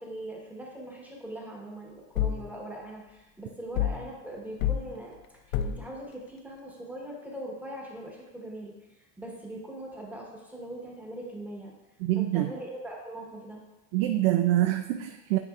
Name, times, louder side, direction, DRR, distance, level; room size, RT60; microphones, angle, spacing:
voice 1, 0.0-5.2 5.5-11.7 12.2-13.6, right 1 dB, 5° right, -2 dB, 1.1 m, -41 dB
sound 1, 2.2-2.5 3.7-4.1 4.6-4.9 5.5-5.9, left 10 dB, 85° left, 0.5 m, -28 dB
voice 2, 12.0-12.5 13.9-15.4, right 14 dB, 70° right, 7 dB, 0.5 m, -25 dB
9.5 x 4.2 x 2.4 m, 1.0 s
supercardioid pair, 125°, 42 cm